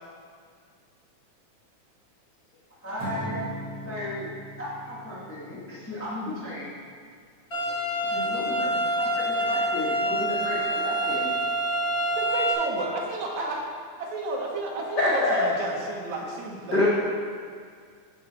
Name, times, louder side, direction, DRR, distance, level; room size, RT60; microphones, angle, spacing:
voice 1, 2.8-3.5 3.8-4.3 4.6-6.7 8.1-11.3, left 1 dB, 10° left, -8 dB, 0.8 m, -34 dB
Acoustic guitar / Strum, 3.0-6.3, equal, 45° right, 1.8 m, -39 dB
sound 1, 7.5-12.5, right 1 dB, 30° left, 1.3 m, -26 dB
voice 2, 12.2-13.6 14.0-16.8, right 2 dB, 70° right, -1 dB, 2.4 m, -32 dB
voice 3, 14.9-15.4 16.7-16.9, left 2 dB, 70° left, -6 dB, 1.0 m, -22 dB
13.0 x 4.6 x 4.2 m, 2.1 s
omnidirectional pair, 3.6 m